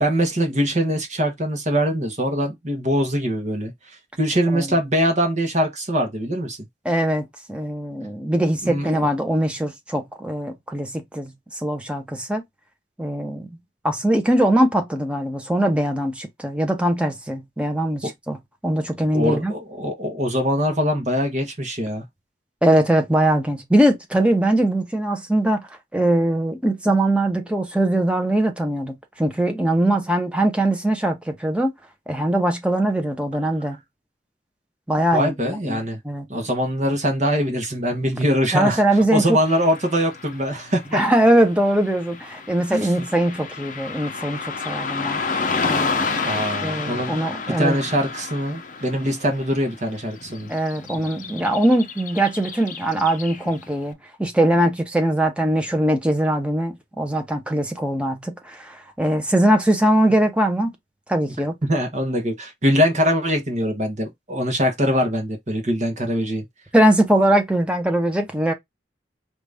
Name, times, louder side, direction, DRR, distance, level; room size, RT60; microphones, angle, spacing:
voice 1, 0.0-3.7 4.2-6.6 8.6-8.9 18.0-18.1 19.1-22.0 35.1-36.0 36.3-41.0 42.7-42.9 46.2-47.2 47.5-50.5 61.6-66.5, equal, 40° right, 1.1 m, -22 dB
voice 2, 6.8-12.4 13.0-13.5 13.8-18.4 18.6-19.5 22.6-31.7 32.1-33.8 34.9-35.8 36.0-36.2 38.5-39.4 40.9-45.2 45.6-46.2 46.6-47.8 50.5-60.7 61.1-61.5 66.7-68.5, right 1 dB, 5° right, 0.9 m, -21 dB
Car passing by / Traffic noise roadway noise, 39.4-53.7, left 4 dB, 45° left, 0.7 m, -31 dB
5.0 x 2.6 x 3.5 m
head